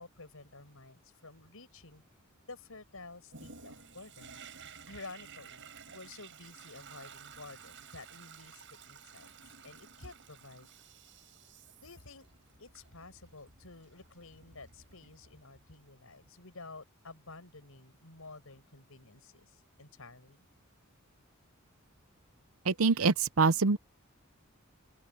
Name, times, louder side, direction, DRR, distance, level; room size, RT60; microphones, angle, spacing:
voice 1, 0.0-2.0 2.4-4.4 4.9-9.3 9.6-10.7 11.8-12.3 12.6-20.5, left 3 dB, 85° left, 5.3 m, -51 dB
Toilet flush, 3.3-15.7 16.3-16.4, right 6 dB, 60° right, 7.6 m, -53 dB
voice 2, 22.7-23.8, right 4 dB, 80° right, 0.7 m, -25 dB
open air
head